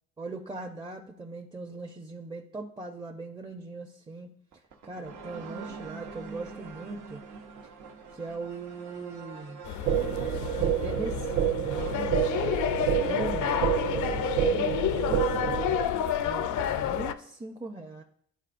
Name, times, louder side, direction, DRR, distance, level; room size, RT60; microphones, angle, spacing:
voice 1, 0.2-4.3 4.8-7.2 8.1-9.6 10.6-12.3 12.8-13.5 13.8-15.6 16.2-18.0, right 3 dB, 15° right, 2 dB, 0.5 m, -40 dB
sound 1, 4.5-13.4, right 5 dB, 90° right, 0.9 m, -45 dB
sound 2, 9.7-17.1, left 10 dB, 75° left, 0.5 m, -30 dB
sound 3, 9.9-15.9, right 10 dB, 70° right, 0.5 m, -28 dB
11.0 x 4.4 x 2.5 m, 0.67 s
cardioid pair, 90°, 30 cm